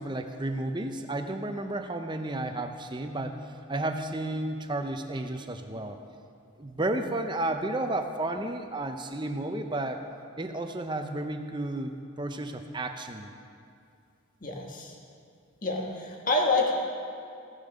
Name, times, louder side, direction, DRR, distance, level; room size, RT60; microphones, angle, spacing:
voice 1, 0.0-3.4 3.7-6.0 6.6-10.0 10.4-13.3, right 2 dB, 20° right, 6 dB, 0.7 m, -32 dB
voice 2, 14.4-14.9 15.6-16.7, left 2 dB, 40° left, 0 dB, 1.7 m, -27 dB
16.0 x 10.5 x 5.2 m, 2.5 s
head